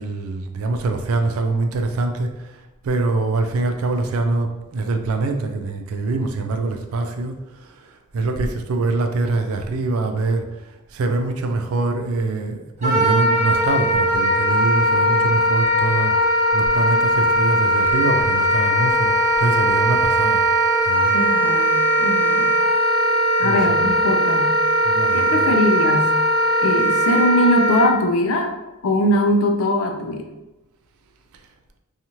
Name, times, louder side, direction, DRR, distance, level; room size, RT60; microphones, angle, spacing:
voice 1, 0.0-2.5 2.8-7.3 8.1-10.5 10.9-19.1 19.4-20.4 20.8-21.2 23.4-23.9 24.8-25.6, right 3 dB, 70° right, 5 dB, 0.3 m, -24 dB
Wind instrument woodwind instrument, 12.8-27.9, equal, 30° right, 0.9 m, -19 dB
voice 2, 21.1-22.5 23.4-24.6 25.1-26.1 26.6-28.5 28.8-30.2, left 1 dB, 70° left, 5 dB, 0.4 m, -21 dB
2.9 x 2.4 x 2.7 m, 1.0 s
head